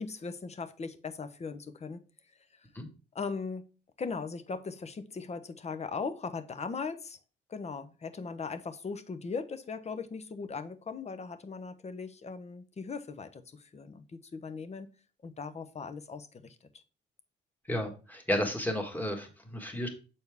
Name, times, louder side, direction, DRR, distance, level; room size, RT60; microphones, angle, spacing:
voice 1, 0.0-2.0 3.1-3.7 4.0-7.2 7.5-14.9 15.2-16.6, left 5 dB, 35° left, 10 dB, 0.8 m, -39 dB
voice 2, 17.7-19.9, equal, 10° left, 3 dB, 1.6 m, -32 dB
6.9 x 4.3 x 3.4 m, 0.35 s
cardioid pair, 90°, 20 cm